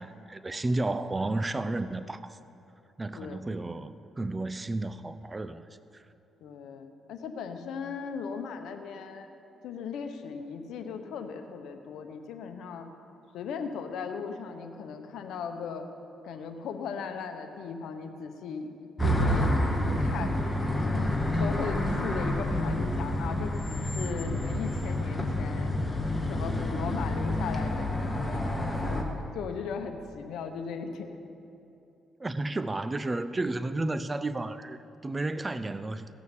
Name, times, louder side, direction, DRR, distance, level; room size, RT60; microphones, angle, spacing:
voice 1, 0.0-2.4 3.0-5.7 5.9-6.0 32.2-36.1, right 2 dB, 20° right, 12 dB, 0.5 m, -32 dB
voice 2, 6.4-9.3 9.6-12.9 13.3-15.8 16.2-18.7 19.0-20.4 20.9-25.7 26.3-29.0 29.3-31.1, left 6 dB, 80° left, 6 dB, 1.0 m, -37 dB
sound 1, 19.0-29.0, left 1 dB, 15° left, 1.6 m, -28 dB
16.5 x 6.4 x 7.2 m, 2.8 s
cardioid pair, 90°, 0 cm